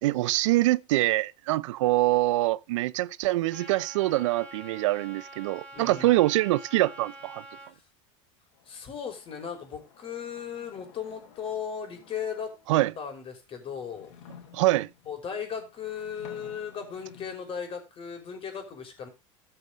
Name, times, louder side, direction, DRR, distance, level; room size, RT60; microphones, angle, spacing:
voice 1, 0.0-7.4 12.7-12.9 14.5-14.9, right 17 dB, 75° right, 0.6 m, -24 dB
Trumpet, 3.5-7.7, right 2 dB, 5° left, 4.8 m, -46 dB
voice 2, 5.7-6.2 7.7-7.8 8.7-12.6 13.0-14.1 15.1-19.1, left 7 dB, 35° left, 5.7 m, -37 dB
sound 1, 8.5-12.9 13.5-17.4, left 8 dB, 70° left, 4.6 m, -54 dB
13.5 x 6.9 x 5.3 m
supercardioid pair, 120°, 16 cm